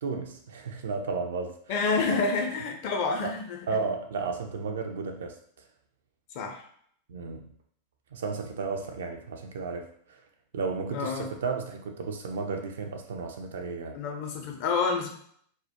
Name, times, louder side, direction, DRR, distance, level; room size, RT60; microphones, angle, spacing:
voice 1, 0.0-1.6 2.1-2.2 3.7-5.3 7.1-7.5 8.1-10.2 10.5-14.0, right 4 dB, 60° right, 4 dB, 0.3 m, -33 dB
voice 2, 1.7-3.8 6.3-6.6 10.9-11.3 13.9-15.1, left 4 dB, 45° left, 2 dB, 0.5 m, -28 dB
2.1 x 2.0 x 2.8 m, 0.62 s
figure-of-eight pair, 90°, 0 cm